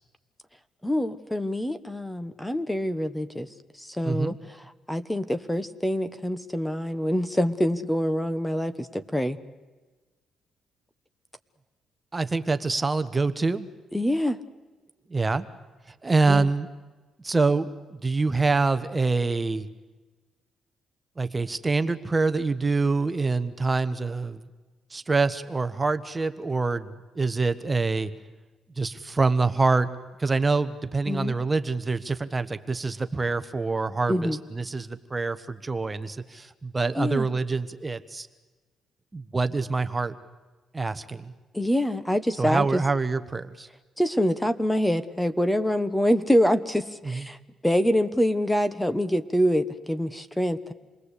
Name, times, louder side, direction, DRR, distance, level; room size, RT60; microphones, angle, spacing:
voice 1, 0.8-3.5 3.8-4.6 4.9-9.4 13.9-14.4 16.3-16.5 31.1-31.3 34.1-34.4 37.0-37.3 41.5-42.8 44.0-47.4 47.6-50.7, equal, 5° left, 13 dB, 1.3 m, -25 dB
voice 2, 4.0-4.4 12.1-13.7 15.1-15.5 15.9-16.7 17.2-19.7 21.2-24.4 24.9-28.1 28.8-29.9 30.2-38.3 39.1-40.1 40.7-41.3 42.4-43.7 47.0-47.2, right 3 dB, 20° right, 11 dB, 1.2 m, -26 dB
28.0 x 20.5 x 8.4 m, 1.3 s
cardioid pair, 90°, 0 cm